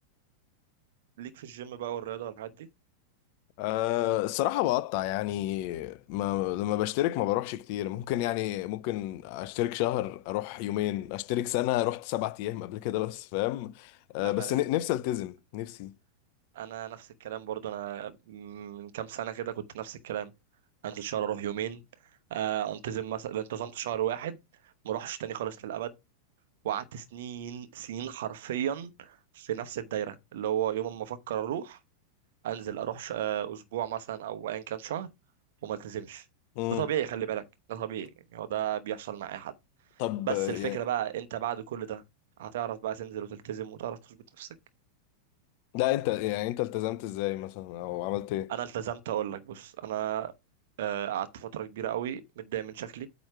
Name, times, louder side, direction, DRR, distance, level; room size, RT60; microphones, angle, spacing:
voice 1, 1.2-2.7 14.2-14.6 16.5-20.3 20.8-21.8 22.3-24.4 24.8-25.9 26.6-31.8 32.4-35.1 35.6-36.2 36.7-37.4 37.7-39.5 40.2-42.0 42.4-44.5 48.5-50.3 50.8-53.1, right 11 dB, 55° right, 0.9 m, -34 dB
voice 2, 3.6-15.9 36.6-36.9 40.0-40.8 45.7-48.5, left 15 dB, 45° left, 0.5 m, -30 dB
8.7 x 3.1 x 5.8 m
figure-of-eight pair, 90°, 0 cm